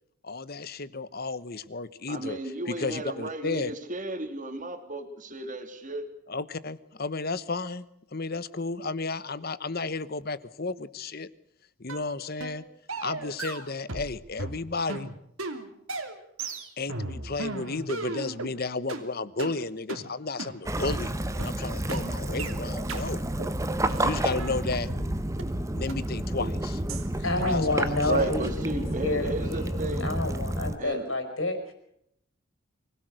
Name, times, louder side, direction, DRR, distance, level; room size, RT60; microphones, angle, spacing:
voice 1, 0.2-2.4 2.7-3.7 6.3-7.8 8.1-11.3 11.8-12.6 13.0-15.1 16.8-23.2 24.0-24.9 25.7-26.8 27.4-28.3, left 3 dB, 45° left, 16 dB, 1.0 m, -33 dB
voice 2, 2.1-6.0 28.1-30.1 30.8-31.0, right 2 dB, 35° right, 7 dB, 2.8 m, -33 dB
sound 1, 11.9-12.1 12.4-12.6 12.9-14.1 14.4-18.5 18.9-19.0 19.4-19.5 19.9-20.0 20.4-20.5 20.9-21.0 21.4-21.5 21.9-22.0 22.4-22.5 22.9-23.0 23.4-23.6 23.9-25.1 25.4-25.5 25.9-26.0 26.4-26.6 26.9-27.1 27.4-27.6, right 3 dB, 75° right, 2.9 m, -36 dB
Waves surf / Splash splatter / Trickle dribble, 20.7-30.8, right 1 dB, 15° right, 1.0 m, -30 dB
voice 3, 27.2-31.7, left 2 dB, 65° left, 8 dB, 5.2 m, -29 dB
25.0 x 17.5 x 6.5 m, 0.73 s
head